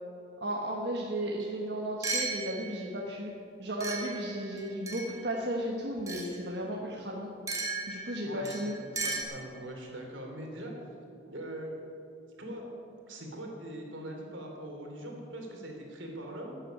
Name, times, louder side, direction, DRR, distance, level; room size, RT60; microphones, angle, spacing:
voice 1, 0.4-3.3 3.6-7.3 7.9-8.8, right 1 dB, 60° right, -2 dB, 1.5 m, -34 dB
sound 1, 1.4-1.5 2.0-2.9 3.8-5.3 6.1-6.4 7.5-9.2, right 3 dB, 15° right, 1.6 m, -36 dB
voice 2, 8.2-10.7 11.3-11.9 12.4-12.7 13.1-16.6, right 1 dB, 85° right, 1 dB, 3.1 m, -42 dB
12.0 x 9.1 x 9.1 m, 2.7 s
head